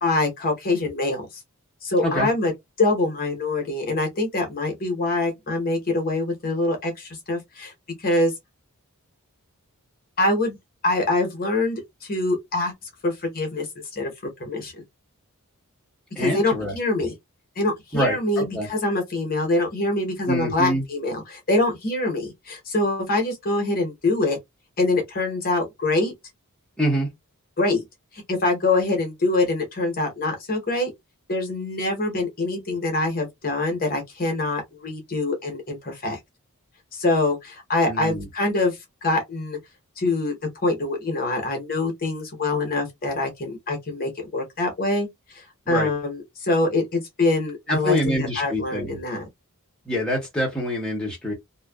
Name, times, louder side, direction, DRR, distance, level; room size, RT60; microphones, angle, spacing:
voice 1, 0.0-1.3 1.8-2.5 2.8-7.7 8.0-8.3 10.2-10.6 10.8-12.7 13.0-13.7 13.9-14.1 14.4-14.8 16.2-17.1 17.6-24.4 24.8-26.1 27.6-27.8 28.3-30.9 31.3-36.2 36.9-39.6 40.0-40.3 40.6-49.3, left 2 dB, 40° left, 0.9 m, -24 dB
voice 2, 16.2-16.7 17.9-18.7 20.3-20.8 26.8-27.1 37.9-38.3 45.7-45.9 47.7-49.0 49.9-51.3, equal, 5° left, 1.0 m, -25 dB
2.6 x 2.2 x 2.2 m
head